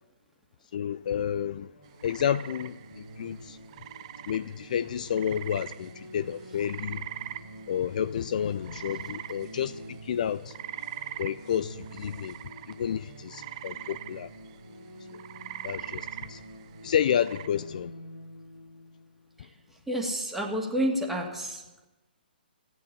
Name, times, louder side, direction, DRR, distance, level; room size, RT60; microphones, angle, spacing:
voice 1, 0.7-1.7 2.0-3.6 4.3-7.0 7.7-10.5 11.2-12.4 12.7-14.3 15.1-15.2 15.6-16.4 16.8-17.9, left 9 dB, 50° left, 0.4 m, -30 dB
sound 1, 1.5-20.1, right 1 dB, 90° left, 2.4 m, -48 dB
sound 2, 1.9-17.5, right 12 dB, 35° right, 0.6 m, -43 dB
voice 2, 19.9-21.6, equal, 5° right, 2.5 m, -29 dB
16.5 x 9.4 x 8.7 m
figure-of-eight pair, 130°, 5 cm